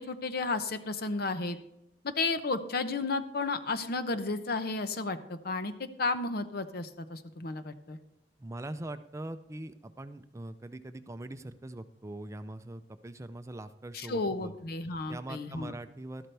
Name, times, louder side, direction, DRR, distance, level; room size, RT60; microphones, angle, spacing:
voice 1, 0.0-1.6 2.0-8.0 13.9-15.7, left 3 dB, 60° left, 10 dB, 0.8 m, -33 dB
voice 2, 8.4-14.5 15.1-16.3, right 1 dB, 15° right, 10 dB, 0.5 m, -42 dB
12.5 x 12.0 x 3.4 m, 0.79 s
head